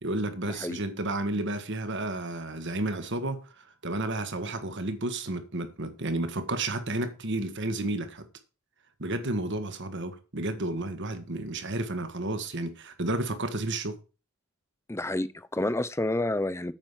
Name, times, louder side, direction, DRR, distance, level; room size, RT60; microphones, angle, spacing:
voice 1, 0.0-8.2 9.0-14.0, right 2 dB, 55° right, 1.7 m, -32 dB
voice 2, 14.9-16.7, left 1 dB, 10° left, 0.6 m, -29 dB
9.0 x 6.1 x 7.3 m
head